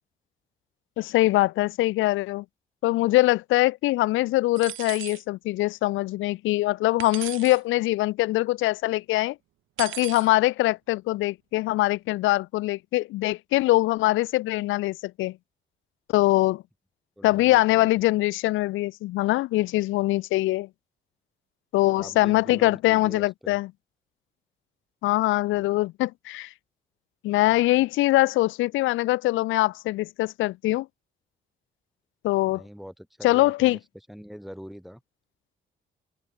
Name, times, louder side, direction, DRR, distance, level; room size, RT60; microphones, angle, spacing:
voice 1, 1.0-2.4 2.8-9.4 9.8-15.4 16.1-16.6 17.2-20.7 21.7-23.7 25.0-26.5 27.2-30.9 32.2-32.6 33.2-33.8, left 18 dB, 85° left, 0.5 m, -23 dB
sound 1, 4.6-5.2 7.0-7.6 9.8-10.3, right 15 dB, 85° right, 1.2 m, -37 dB
voice 2, 17.2-18.1 21.9-23.6 25.5-25.7 27.5-27.7 32.4-33.8 34.1-35.0, equal, ahead, 4.2 m, -43 dB
cardioid pair, 90°, 20 cm